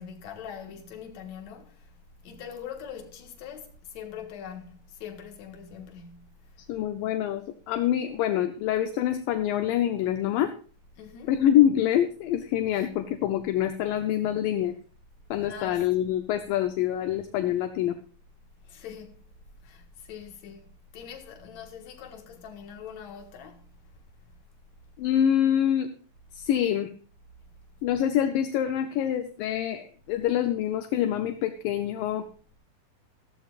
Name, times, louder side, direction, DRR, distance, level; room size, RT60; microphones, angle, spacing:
voice 1, 0.0-1.9 2.2-6.3 11.0-11.3 15.4-15.8 18.6-19.2 19.6-23.7, left 7 dB, 60° left, 2.6 m, -42 dB
voice 2, 6.7-10.5 11.3-14.7 15.3-18.0 25.0-25.9 26.3-26.9 27.8-32.3, left 11 dB, 75° left, 2.3 m, -25 dB
14.5 x 14.0 x 2.4 m
omnidirectional pair, 4.1 m